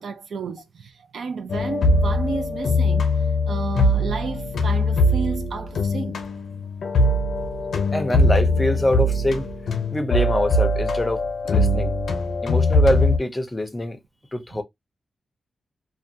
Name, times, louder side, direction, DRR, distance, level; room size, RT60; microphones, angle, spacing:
voice 1, 0.0-3.1 3.5-6.2, right 5 dB, 70° right, 0.4 m, -32 dB
sound 1, 1.5-13.2, left 1 dB, 85° left, 0.6 m, -21 dB
voice 2, 7.9-9.5 9.9-11.9 12.4-14.0 14.3-14.6, left 1 dB, 15° left, 0.5 m, -24 dB
2.4 x 2.2 x 2.6 m
wide cardioid pair, 170°, 0 cm